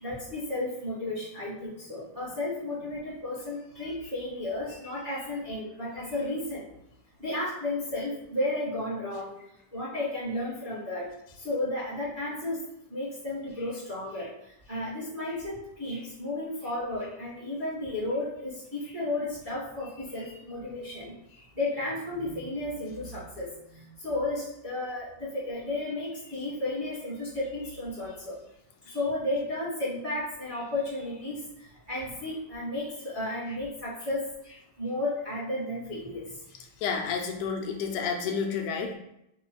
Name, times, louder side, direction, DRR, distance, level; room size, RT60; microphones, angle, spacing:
voice 1, 0.0-6.6 7.2-9.3 9.7-11.0 11.4-12.6 12.9-14.3 14.7-21.1 21.6-23.5 23.8-28.3 28.9-31.4 31.9-34.2 34.4-36.2, left 2 dB, 50° right, -10 dB, 0.6 m, -33 dB
voice 2, 36.8-39.0, left 5 dB, 80° left, 3 dB, 2.0 m, -30 dB
5.1 x 2.2 x 4.4 m, 0.81 s
omnidirectional pair, 3.6 m